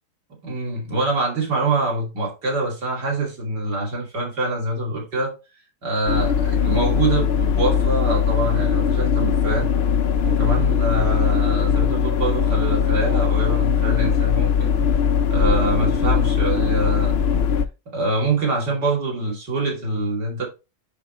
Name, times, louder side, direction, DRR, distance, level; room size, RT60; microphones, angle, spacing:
voice 1, 0.3-5.3 5.8-9.7 10.3-14.8 15.3-17.1 17.9-20.5, right 2 dB, 85° right, 3.5 m, -24 dB
sound 1, 6.1-17.7, left 7 dB, 50° left, 0.8 m, -20 dB
9.9 x 4.7 x 3.1 m
omnidirectional pair, 1.8 m